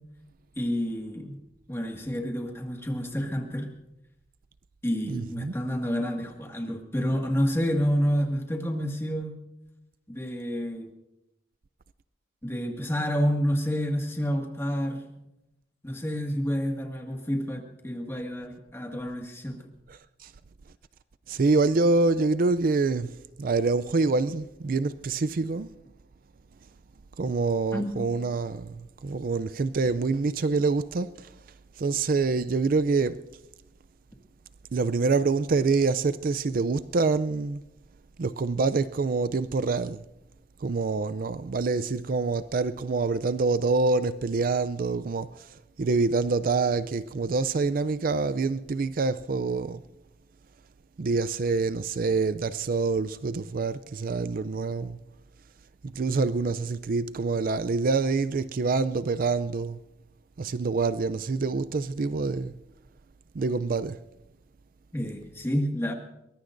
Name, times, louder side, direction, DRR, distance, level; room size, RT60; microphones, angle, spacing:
voice 1, 0.6-1.4 1.7-3.7 4.8-9.4 10.1-10.9 12.4-15.1 15.8-19.7 27.7-28.1 64.9-65.9, equal, 15° left, 1.9 m, -29 dB
voice 2, 5.1-5.5 19.9-20.3 21.3-25.7 27.2-31.3 31.8-33.2 34.7-37.6 38.2-40.0 40.6-45.4 45.8-49.8 51.0-55.0 55.8-59.8 60.4-62.5 63.3-64.0, right 3 dB, 55° right, 0.4 m, -26 dB
22.5 x 20.5 x 2.6 m
head